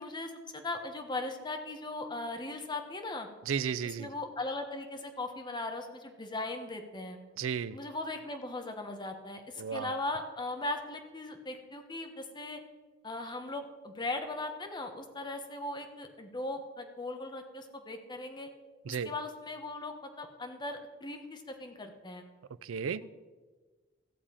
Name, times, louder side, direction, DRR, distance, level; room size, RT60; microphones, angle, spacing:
voice 1, 0.0-3.3 3.8-7.2 7.7-12.6 13.0-18.5 18.9-22.2 23.0-23.1, left 2 dB, 25° left, 5 dB, 1.1 m, -38 dB
voice 2, 3.5-4.1 7.4-7.8 9.6-9.9 18.9-19.1 22.6-23.0, right 7 dB, 85° right, 16 dB, 0.4 m, -33 dB
15.0 x 7.3 x 5.0 m, 1.4 s
head